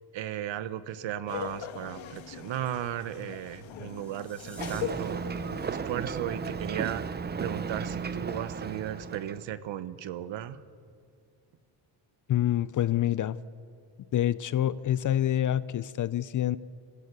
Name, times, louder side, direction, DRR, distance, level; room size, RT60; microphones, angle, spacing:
voice 1, 0.1-5.2 5.7-7.0 7.4-10.6, right 11 dB, 65° right, 14 dB, 1.0 m, -35 dB
Laughter, 1.3-6.3, left 9 dB, 70° left, 1.5 m, -40 dB
sound 1, 3.9-4.8, left 1 dB, 5° left, 5.9 m, -51 dB
Ocean, 4.6-9.5, right 5 dB, 20° right, 0.5 m, -35 dB
voice 2, 12.3-13.4 14.1-16.6, left 12 dB, 40° left, 18 dB, 0.5 m, -27 dB
22.5 x 14.5 x 8.1 m, 2.3 s
cardioid pair, 120°, 48 cm